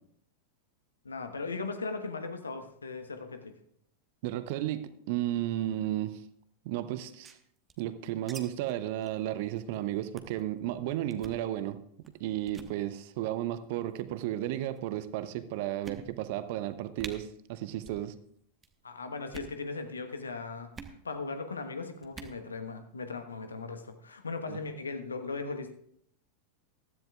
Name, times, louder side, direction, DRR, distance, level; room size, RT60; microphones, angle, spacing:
voice 1, 1.0-3.5 18.8-20.7 21.0-25.7, left 4 dB, 75° left, 7 dB, 1.3 m, -38 dB
voice 2, 4.2-6.2 6.6-7.4 7.8-11.8 12.2-18.1 24.5-24.6, right 13 dB, 50° right, 13 dB, 0.8 m, -33 dB
sound 1, 7.0-8.4 8.7-8.8 9.0-9.2 9.6-9.7 10.1-10.4 11.1-11.4 12.0-12.2 12.5-12.7 13.6-14.0 14.8-14.9 15.3-15.4 15.8-16.4 16.7-16.8 17.0-17.1 17.8-18.1 18.3-18.7 19.2-19.6 20.7-21.0 22.0-22.4, right 5 dB, 20° right, 1.2 m, -46 dB
15.5 x 13.5 x 2.5 m, 0.69 s
figure-of-eight pair, 90°, 0 cm